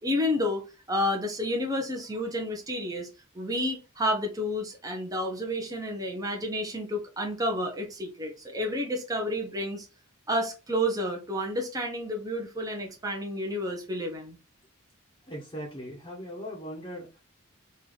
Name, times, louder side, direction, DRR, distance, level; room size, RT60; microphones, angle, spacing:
voice 1, 0.0-0.6 0.9-3.1 3.3-9.9 10.3-14.4, left 1 dB, 15° right, 0.9 m, -30 dB
voice 2, 15.3-17.2, equal, 20° left, 1.0 m, -39 dB
3.3 x 2.7 x 3.9 m
head